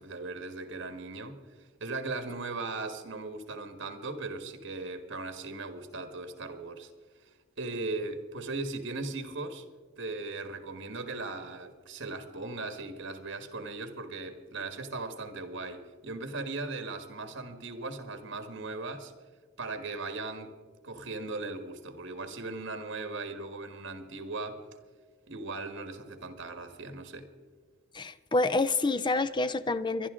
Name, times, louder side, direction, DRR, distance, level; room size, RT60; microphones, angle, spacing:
voice 1, 0.0-1.4 1.8-6.9 7.6-9.6 10.0-19.1 19.6-20.5 20.8-24.6 25.3-27.3, right 3 dB, 65° right, 1.5 m, -38 dB
voice 2, 27.9-30.1, left 3 dB, 25° left, 0.5 m, -28 dB
24.5 x 11.5 x 3.7 m
head